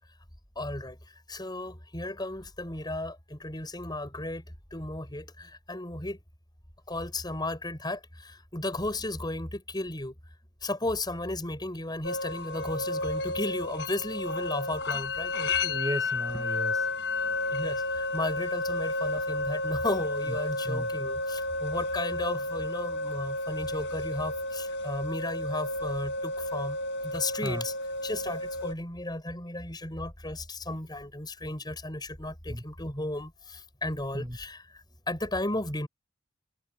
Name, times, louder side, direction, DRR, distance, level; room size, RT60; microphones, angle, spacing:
voice 1, 0.5-1.0 1.3-4.4 4.7-6.2 6.9-10.1 10.6-15.3 17.5-26.8 27.0-27.7 28.0-34.6 35.1-35.9, left 2 dB, 20° left, 6.7 m, -34 dB
sound 1, 12.0-28.7, left 2 dB, 60° left, 7.1 m, -32 dB
voice 2, 15.3-16.8 20.7-20.9 27.4-27.6 32.5-32.6 34.1-34.3, equal, 20° right, 6.9 m, -34 dB
head